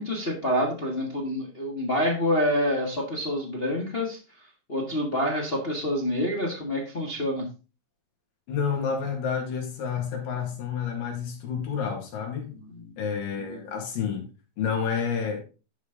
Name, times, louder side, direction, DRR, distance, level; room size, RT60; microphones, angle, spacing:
voice 1, 0.0-4.2 4.7-7.5 12.5-12.9 13.5-13.6, left 1 dB, 50° left, 0.6 m, -27 dB
voice 2, 8.5-12.5 13.0-14.3 14.6-15.4, left 6 dB, 75° left, 3.8 m, -29 dB
11.0 x 5.2 x 3.8 m
omnidirectional pair, 4.1 m